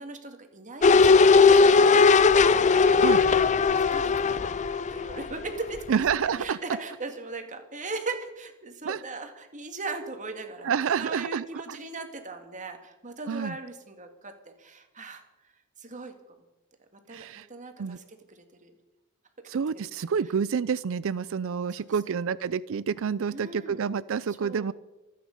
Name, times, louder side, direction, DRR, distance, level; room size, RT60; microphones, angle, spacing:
voice 1, 0.0-2.2 2.8-5.8 6.2-14.3 14.6-15.2 15.8-16.1 17.1-18.7 21.8-22.2 23.3-23.9 24.3-24.7, right 3 dB, 35° right, 6 dB, 2.0 m, -39 dB
sound 1, 0.8-5.8 6.1-6.2, left 4 dB, 30° left, 0.4 m, -19 dB
voice 2, 5.9-6.6 8.9-9.0 10.6-11.4 13.3-13.5 17.1-17.5 17.8-18.0 19.5-24.7, right 6 dB, 60° right, 18 dB, 0.4 m, -28 dB
26.5 x 9.3 x 5.3 m, 1.0 s
head